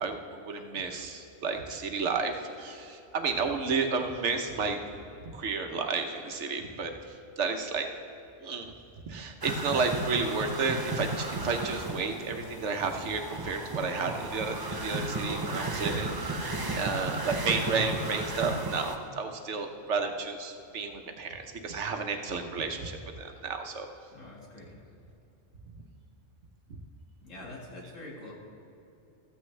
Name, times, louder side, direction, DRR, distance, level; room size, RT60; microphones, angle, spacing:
voice 1, 0.0-4.8 5.3-6.9 7.4-7.9 8.4-8.7 9.1-23.9 26.7-26.8, right 4 dB, 70° right, 5 dB, 1.3 m, -32 dB
sound 1, 9.4-19.0, right 2 dB, 20° right, 0.6 m, -34 dB
voice 2, 16.6-17.3 24.1-24.8 27.2-28.3, left 2 dB, 85° left, -2 dB, 2.5 m, -46 dB
14.5 x 14.0 x 3.3 m, 2.8 s
omnidirectional pair, 1.3 m